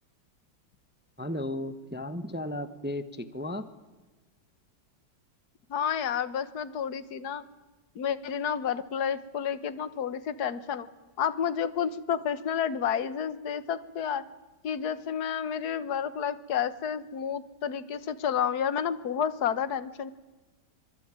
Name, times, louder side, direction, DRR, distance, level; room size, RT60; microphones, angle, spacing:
voice 1, 1.2-3.7, left 1 dB, 5° right, 11 dB, 1.0 m, -34 dB
voice 2, 5.7-7.4 7.9-10.9 11.2-14.2 14.6-20.1, left 8 dB, 55° left, 14 dB, 1.7 m, -30 dB
26.5 x 21.0 x 9.0 m, 1.2 s
omnidirectional pair, 2.1 m